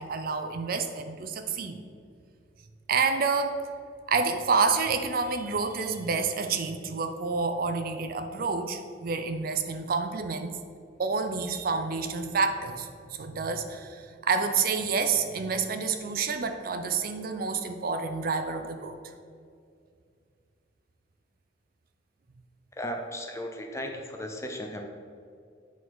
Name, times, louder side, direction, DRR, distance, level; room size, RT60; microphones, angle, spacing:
voice 1, 0.0-1.8 2.9-3.6 4.1-10.6 11.0-18.9, right 4 dB, 50° right, 8 dB, 0.5 m, -28 dB
voice 2, 22.7-24.8, equal, 15° left, 3 dB, 0.6 m, -36 dB
8.2 x 3.9 x 4.7 m, 2.3 s
head